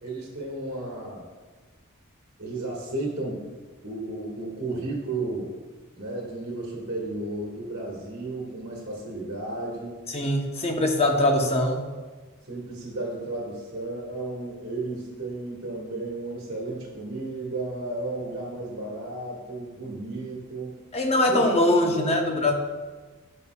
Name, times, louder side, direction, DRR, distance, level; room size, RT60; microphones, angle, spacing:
voice 1, 0.0-1.3 2.4-3.4 3.8-5.5 6.0-10.0 12.5-20.7 21.2-21.4 21.9-22.0, right 2 dB, 55° right, -4 dB, 1.6 m, -33 dB
voice 2, 10.1-11.9 20.9-22.5, left 1 dB, 30° left, 2 dB, 0.8 m, -22 dB
12.5 x 5.5 x 2.3 m, 1.3 s
head